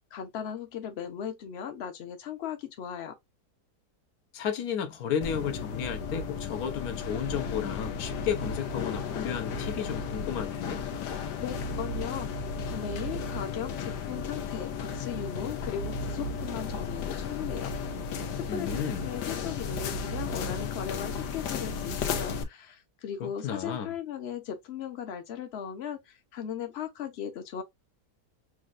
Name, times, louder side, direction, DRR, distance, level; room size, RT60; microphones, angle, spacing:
voice 1, 0.0-3.1 11.4-17.7 18.3-27.6, left 8 dB, 45° left, 0.9 m, -38 dB
voice 2, 4.3-10.8 18.5-19.1 23.2-23.9, left 8 dB, 65° left, 1.3 m, -33 dB
sound 1, 5.2-22.4, left 5 dB, 90° left, 1.4 m, -34 dB
6.3 x 2.6 x 2.5 m
omnidirectional pair, 1.8 m